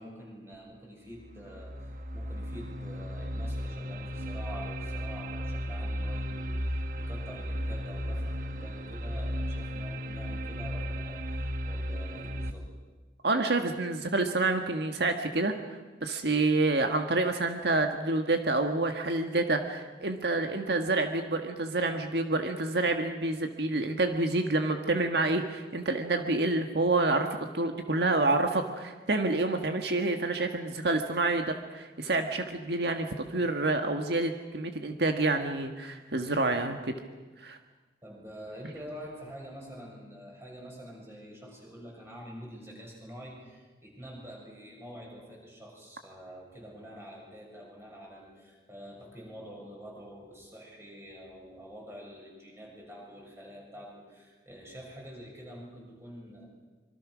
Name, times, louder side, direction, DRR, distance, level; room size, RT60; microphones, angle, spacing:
voice 1, 0.0-12.8 38.0-56.5, equal, 15° right, -2 dB, 6.5 m, -47 dB
sound 1, 1.2-12.5, equal, 50° right, 1.4 m, -35 dB
voice 2, 13.2-27.3 27.5-36.9 37.4-37.6, right 2 dB, 70° right, 5 dB, 1.5 m, -28 dB
26.5 x 24.0 x 6.2 m, 1.3 s
head